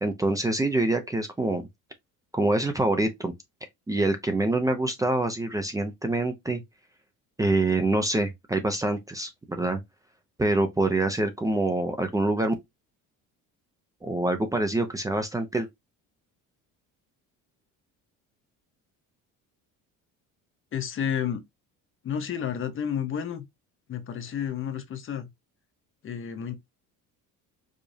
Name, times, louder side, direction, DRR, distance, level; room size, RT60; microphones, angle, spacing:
voice 1, 0.0-1.6 2.3-3.3 3.9-6.6 7.4-9.8 10.4-12.5 14.0-15.7, right 2 dB, 10° right, 0.6 m, -25 dB
voice 2, 20.7-21.4 22.0-23.4 23.9-25.3 26.0-26.6, left 8 dB, 35° left, 0.8 m, -31 dB
5.0 x 2.6 x 2.6 m
cardioid pair, 130°, 34 cm